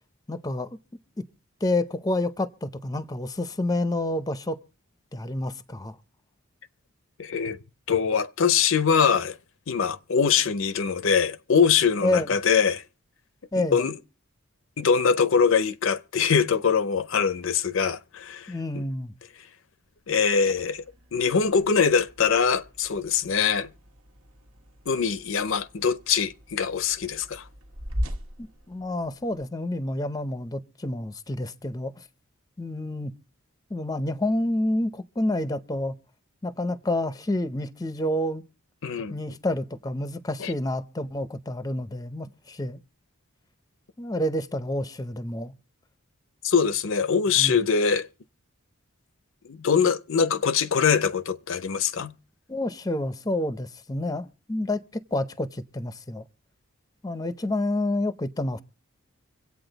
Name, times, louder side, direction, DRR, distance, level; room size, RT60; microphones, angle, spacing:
voice 1, 0.3-0.8 1.6-4.6 5.1-6.0 12.0-12.3 13.5-13.8 18.5-19.1 28.4-32.0 32.6-33.1 33.7-35.9 36.4-38.4 39.1-42.8 44.0-45.5 47.4-47.6 52.5-54.8 55.1-56.2 57.0-58.6, left 1 dB, 15° left, 0.6 m, -28 dB
voice 2, 7.2-7.6 7.9-9.4 9.7-12.8 13.6-13.9 14.8-18.8 20.1-20.8 21.1-23.7 24.9-27.5 38.8-39.1 40.4-40.5 46.4-48.1 49.4-52.1, left 6 dB, 60° left, 0.6 m, -23 dB
sound 1, 20.3-29.4, equal, 80° right, 1.7 m, -40 dB
25.0 x 8.5 x 3.9 m
head